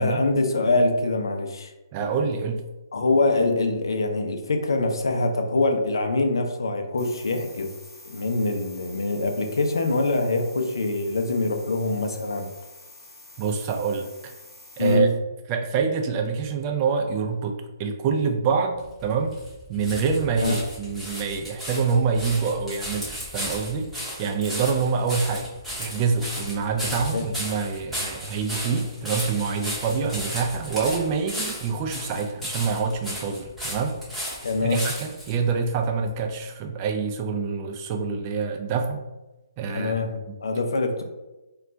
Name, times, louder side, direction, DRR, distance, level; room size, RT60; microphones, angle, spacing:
voice 1, 0.0-1.7 2.9-7.7 8.1-12.5 14.8-15.1 20.4-20.5 27.1-27.3 34.4-34.8 39.7-41.0, left 2 dB, 80° left, 5 dB, 0.5 m, -24 dB
voice 2, 1.9-2.6 13.4-14.3 14.8-15.1 15.5-19.4 19.7-25.5 25.8-39.0 39.6-40.0, right 5 dB, 30° right, 3 dB, 0.3 m, -26 dB
sound 1, 7.0-14.9, left 2 dB, 20° left, 0.7 m, -47 dB
sound 2, 18.8-35.4 36.1-36.2, equal, ahead, 0.9 m, -35 dB
2.3 x 2.2 x 3.8 m, 1.1 s
hypercardioid pair, 145°, 2 cm